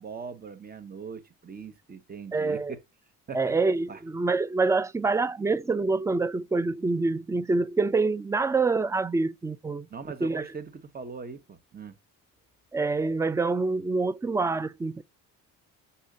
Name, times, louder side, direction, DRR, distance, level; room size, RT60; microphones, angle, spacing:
voice 1, 0.0-2.8 3.3-3.6 3.9-4.0 9.9-11.9, right 5 dB, 30° right, 1.1 m, -40 dB
voice 2, 2.3-2.7 3.3-9.9 10.2-10.5 12.7-15.0, right 3 dB, 10° right, 0.4 m, -26 dB
5.6 x 3.5 x 5.0 m
cardioid pair, 85°, 31 cm